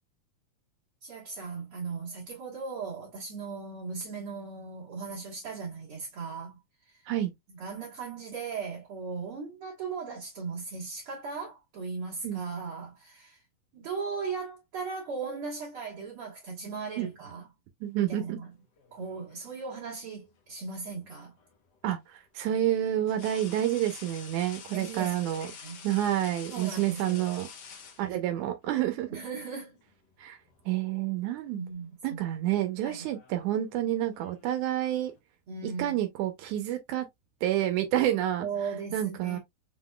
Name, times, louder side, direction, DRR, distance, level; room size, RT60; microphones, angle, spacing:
voice 1, 1.0-6.6 6.9-7.0 7.6-13.4 13.7-17.5 18.0-18.5 18.9-21.3 24.7-25.8 26.5-27.4 29.1-29.8 31.5-32.2 32.8-33.0 35.5-36.0 38.4-39.4, right 5 dB, 50° right, 2.1 m, -38 dB
voice 2, 17.8-18.4 21.8-25.5 25.8-27.5 28.0-29.1 30.2-30.4 30.7-31.6 32.0-35.1 35.6-37.1 37.4-38.5 38.9-39.4, right 12 dB, 85° right, 2.2 m, -29 dB
sound 1, 18.8-19.6 21.4-21.5 23.1-28.5 29.7-29.9 30.3-31.1 31.4-31.7 32.6-35.2, left 6 dB, 75° left, 0.9 m, -48 dB
5.7 x 3.7 x 2.2 m
omnidirectional pair, 3.4 m